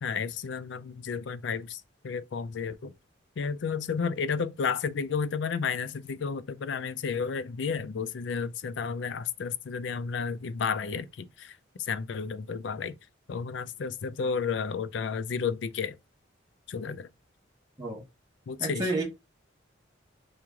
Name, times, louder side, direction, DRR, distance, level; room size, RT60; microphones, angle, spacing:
voice 1, 0.0-2.9 3.4-13.0 13.3-16.0 16.7-17.1 18.5-18.9, left 5 dB, 65° left, 0.4 m, -32 dB
voice 2, 18.6-19.0, right 2 dB, 20° right, 1.0 m, -30 dB
3.5 x 3.1 x 3.6 m
head